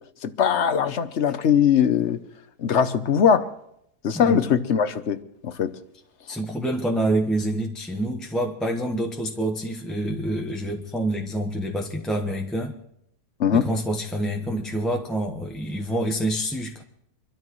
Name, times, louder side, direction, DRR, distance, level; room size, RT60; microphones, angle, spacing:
voice 1, 0.2-2.2 2.6-3.5 4.0-5.7 13.4-13.7, left 7 dB, 50° left, 1.0 m, -21 dB
voice 2, 6.3-12.7 13.5-16.8, right 1 dB, ahead, 1.1 m, -27 dB
25.5 x 13.0 x 3.2 m
omnidirectional pair, 1.7 m